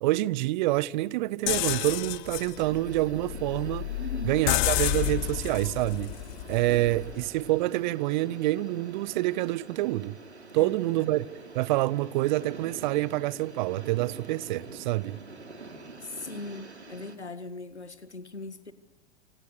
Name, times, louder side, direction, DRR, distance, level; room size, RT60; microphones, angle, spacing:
voice 1, 0.0-3.9 4.2-6.2 6.5-10.2 10.5-11.3 11.5-15.2, right 17 dB, 45° right, 0.9 m, -27 dB
sound 1, 1.5-7.3, left 18 dB, 45° left, 1.2 m, -31 dB
sound 2, 2.5-17.2, right 3 dB, 85° right, 3.6 m, -46 dB
voice 2, 3.9-4.4 10.6-11.1 16.0-18.7, left 3 dB, 90° left, 2.1 m, -40 dB
28.0 x 27.0 x 6.9 m
figure-of-eight pair, 100°, 33 cm